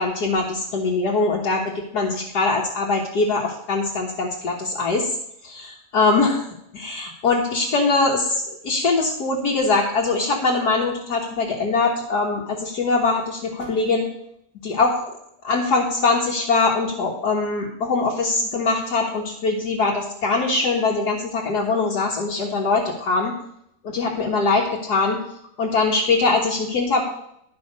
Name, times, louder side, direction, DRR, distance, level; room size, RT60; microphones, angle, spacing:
voice 1, 0.0-5.1 5.4-6.4 6.7-14.1 14.6-15.0 15.4-23.3 23.8-25.2 25.6-27.0, left 3 dB, 75° left, -3 dB, 1.9 m, -22 dB
11.5 x 5.6 x 5.3 m, 0.75 s
omnidirectional pair, 1.7 m